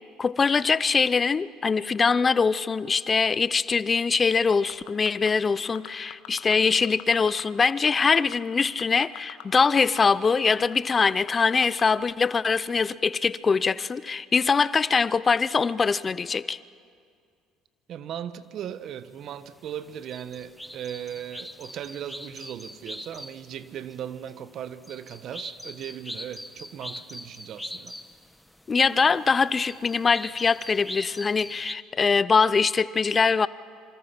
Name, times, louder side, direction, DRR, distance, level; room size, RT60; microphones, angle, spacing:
voice 1, 0.2-16.6 28.7-33.5, left 5 dB, 30° left, 0.6 m, -23 dB
sound 1, 4.5-5.3 5.7-6.5 6.8-7.4 7.7-10.0 10.2-10.3 10.7-11.8 12.3-12.4, left 16 dB, 75° left, 1.4 m, -42 dB
voice 2, 17.9-27.9, right 9 dB, 60° right, 1.2 m, -38 dB
sound 2, 19.2-31.7, left 1 dB, 5° left, 1.2 m, -42 dB
27.5 x 25.0 x 5.9 m
hypercardioid pair, 70°, 0 cm